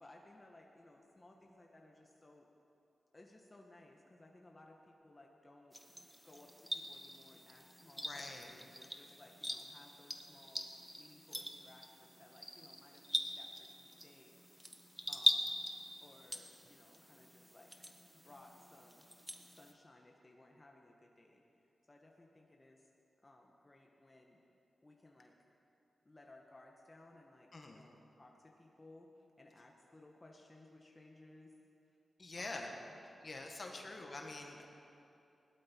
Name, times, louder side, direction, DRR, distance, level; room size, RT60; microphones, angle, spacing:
voice 1, 0.0-2.5 3.1-5.8 6.2-10.7 10.9-14.4 15.1-15.6 16.0-17.9 18.2-19.1 19.4-21.4 21.9-22.9 23.2-24.4 24.8-25.4 26.0-31.5 32.4-32.9 33.6-34.1, left 2 dB, 30° left, 0 dB, 1.5 m, -60 dB
sound 1, 5.7-19.7, equal, 5° right, 1.2 m, -43 dB
voice 2, 8.0-8.5 27.5-27.8 32.2-32.7 33.2-34.7, left 2 dB, 50° left, 2 dB, 1.6 m, -46 dB
17.0 x 12.0 x 4.6 m, 2.7 s
cardioid pair, 50°, 0 cm